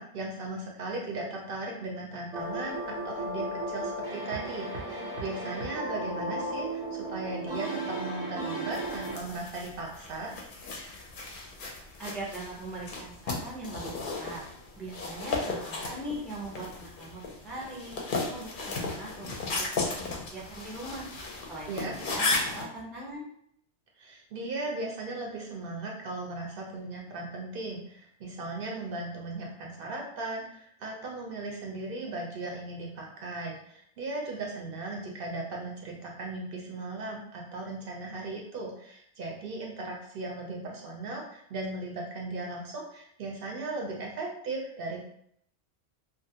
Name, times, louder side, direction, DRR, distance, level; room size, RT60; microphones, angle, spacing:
voice 1, 0.0-10.3 21.7-21.9 24.0-45.0, right 2 dB, 65° right, -1 dB, 0.7 m, -37 dB
sound 1, 2.3-9.2, right 1 dB, 85° right, 1.0 m, -35 dB
sound 2, 8.7-22.6, left 3 dB, 60° left, 0.6 m, -35 dB
voice 2, 12.0-14.4 14.8-19.3 19.7-19.8 20.3-21.1 21.5-23.2, right 1 dB, ahead, -4 dB, 0.4 m, -41 dB
2.4 x 2.3 x 2.7 m, 0.69 s
omnidirectional pair, 1.1 m